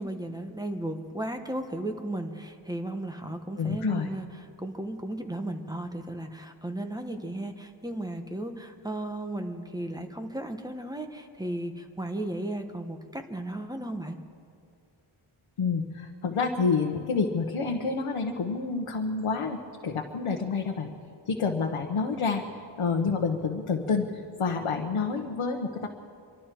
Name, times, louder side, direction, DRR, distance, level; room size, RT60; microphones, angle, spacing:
voice 1, 0.0-14.2, right 1 dB, 10° right, 6 dB, 1.1 m, -35 dB
voice 2, 3.6-4.1 15.6-19.6 19.8-20.9 21.3-22.4 22.8-25.9, left 4 dB, 90° left, 1 dB, 1.0 m, -28 dB
25.5 x 12.5 x 4.5 m, 2.4 s
wide cardioid pair, 90°, 49 cm